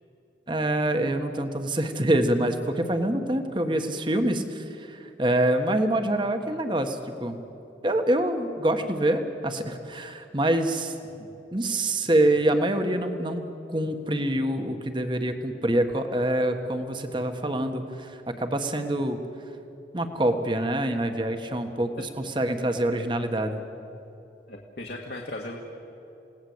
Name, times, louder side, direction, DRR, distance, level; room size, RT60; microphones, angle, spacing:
voice 1, 0.5-7.4 7.8-11.0 11.5-13.4 13.7-19.2 19.9-23.6, right 1 dB, 25° right, 7 dB, 1.5 m, -26 dB
voice 2, 24.5-25.7, left 1 dB, 60° left, -1 dB, 2.0 m, -37 dB
28.5 x 18.5 x 8.1 m, 2.9 s
head